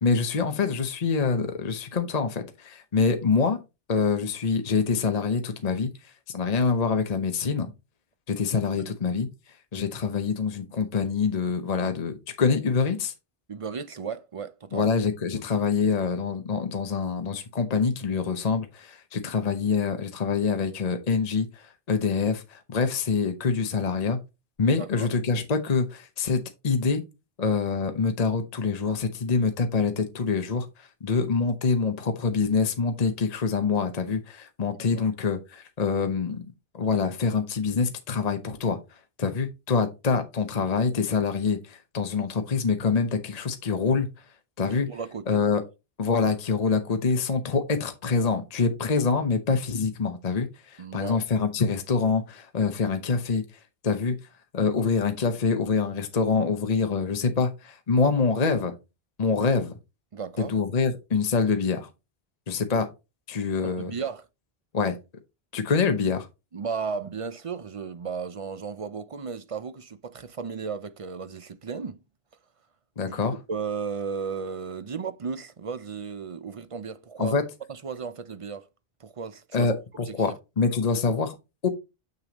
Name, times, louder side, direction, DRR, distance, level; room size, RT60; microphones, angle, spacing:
voice 1, 0.0-3.6 3.9-5.9 6.3-7.7 8.3-9.3 9.7-13.1 14.7-24.2 24.6-27.0 27.4-36.4 36.7-38.8 39.2-44.1 44.6-44.9 45.3-45.6 46.0-53.4 53.8-54.2 54.5-58.7 59.2-59.7 60.4-61.9 62.5-62.9 63.3-63.9 64.7-65.0 65.5-66.3 73.0-73.4 77.2-77.4 79.5-81.3 81.6-81.7, left 5 dB, 40° left, 0.9 m, -25 dB
voice 2, 13.5-14.9 24.8-25.1 34.9-35.0 44.9-45.4 50.8-51.2 60.1-60.6 63.6-64.3 66.5-72.0 73.0-73.2 73.5-77.4 77.7-78.7 79.0-79.7 80.1-80.4, right 5 dB, 40° right, 0.5 m, -35 dB
6.8 x 6.7 x 2.9 m
omnidirectional pair, 1.0 m